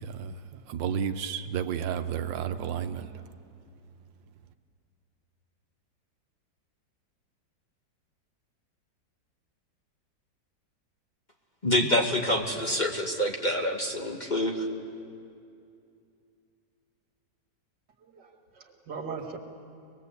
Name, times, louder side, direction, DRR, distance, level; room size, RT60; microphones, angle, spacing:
voice 1, 0.0-3.1, right 8 dB, 85° right, 9 dB, 1.5 m, -32 dB
voice 2, 11.6-14.7, left 1 dB, 25° left, 2 dB, 1.4 m, -26 dB
voice 3, 18.0-19.4, right 5 dB, 70° right, 2 dB, 2.6 m, -39 dB
24.5 x 21.0 x 8.2 m, 2.5 s
omnidirectional pair, 1.9 m